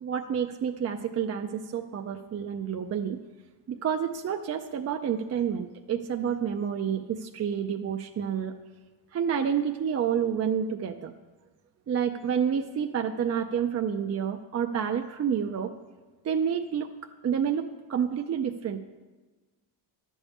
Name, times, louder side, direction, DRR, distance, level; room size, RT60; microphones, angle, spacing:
voice 1, 0.0-3.2 3.7-8.5 9.1-11.1 11.9-15.7 16.2-16.9 17.2-17.6 17.9-18.8, right 8 dB, 35° right, 4 dB, 0.4 m, -29 dB
11.5 x 5.4 x 8.3 m, 1.3 s
cardioid pair, 170°, 48 cm